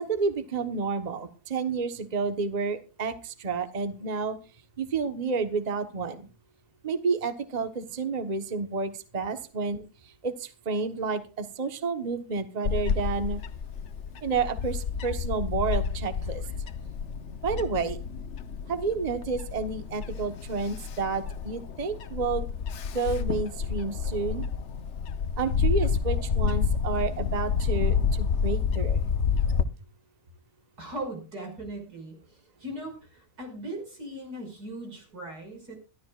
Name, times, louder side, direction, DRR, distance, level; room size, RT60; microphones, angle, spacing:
voice 1, 0.0-4.4 4.8-6.3 6.8-13.4 14.2-16.4 17.4-18.0 18.7-22.4 22.9-24.4 25.4-29.0, right 4 dB, 30° right, 8 dB, 1.2 m, -30 dB
Bird / Wind, 12.6-29.6, left 6 dB, 55° left, 1.1 m, -29 dB
voice 2, 30.8-32.2 32.6-35.8, right 1 dB, 85° right, 2 dB, 6.3 m, -38 dB
23.5 x 12.5 x 2.4 m, 0.32 s
omnidirectional pair, 1.6 m